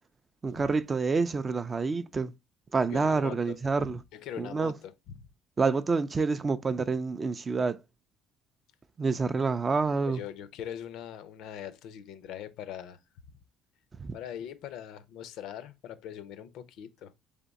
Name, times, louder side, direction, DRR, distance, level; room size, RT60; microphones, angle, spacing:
voice 1, 0.4-2.3 2.7-4.0 4.4-4.7 5.6-7.8 9.0-10.2 14.0-14.1, right 4 dB, 25° right, 0.3 m, -28 dB
voice 2, 2.9-5.3 10.1-13.0 14.1-17.2, left 10 dB, 70° left, 0.5 m, -42 dB
3.5 x 3.5 x 3.9 m
cardioid pair, 125°, 0 cm